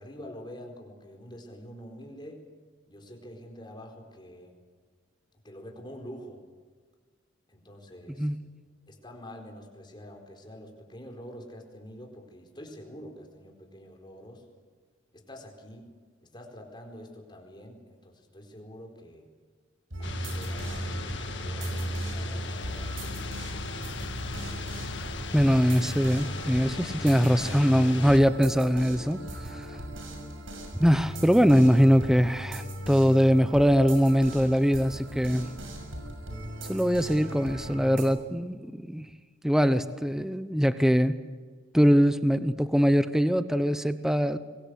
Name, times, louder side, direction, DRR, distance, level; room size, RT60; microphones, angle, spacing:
voice 1, 0.0-2.4 2.9-4.6 5.4-6.4 7.5-8.3 8.9-14.4 15.1-15.9 16.2-19.3 20.0-23.2, equal, 25° left, 2 dB, 4.6 m, -46 dB
sound 1, 19.9-38.0, right 1 dB, 85° right, 6.3 m, -38 dB
sound 2, 20.0-28.2, left 3 dB, 65° left, 1.7 m, -37 dB
voice 2, 25.3-29.7 30.8-35.5 36.7-39.1 39.4-41.2 41.7-44.4, equal, 5° right, 11 dB, 0.9 m, -22 dB
25.5 x 22.5 x 8.3 m, 1.5 s
head